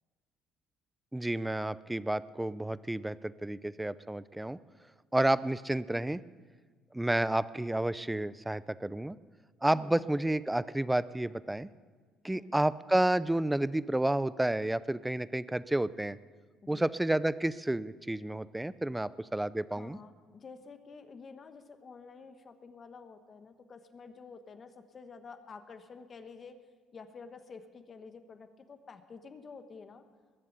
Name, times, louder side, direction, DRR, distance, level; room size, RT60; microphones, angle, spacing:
voice 1, 1.1-4.6 5.1-6.2 6.9-9.2 9.6-11.7 12.2-16.2 16.7-20.0, right 1 dB, 10° right, 17 dB, 0.5 m, -30 dB
voice 2, 9.7-10.0 12.3-12.5 16.6-16.9 19.7-26.6 26.9-30.0, left 5 dB, 35° left, 8 dB, 1.2 m, -50 dB
21.0 x 7.7 x 8.1 m, 1.5 s
cardioid pair, 110°, 0 cm